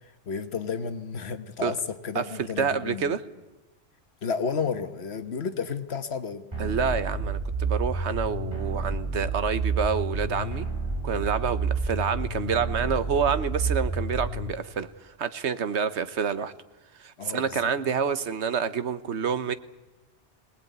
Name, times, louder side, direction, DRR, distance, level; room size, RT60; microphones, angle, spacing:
voice 1, 0.3-3.1 4.2-6.4 17.2-17.7, left 5 dB, 65° left, 10 dB, 1.5 m, -32 dB
voice 2, 2.1-3.2 6.6-10.7 11.0-16.5 17.0-19.5, right 6 dB, 80° right, 13 dB, 1.3 m, -28 dB
sound 1, 6.5-14.5, right 3 dB, 25° right, 4.1 m, -29 dB
22.0 x 18.5 x 9.3 m, 1.1 s
omnidirectional pair, 1.2 m